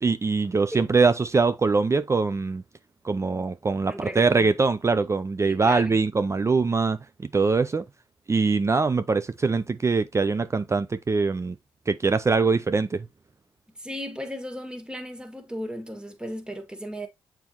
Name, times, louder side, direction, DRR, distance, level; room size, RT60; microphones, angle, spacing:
voice 1, 0.0-2.6 3.0-7.8 8.3-11.6 11.9-13.1, right 4 dB, 30° right, 0.5 m, -23 dB
voice 2, 3.9-4.5 5.4-6.0 13.8-17.1, equal, 10° right, 1.9 m, -36 dB
6.9 x 4.5 x 3.0 m
supercardioid pair, 55°, 10 cm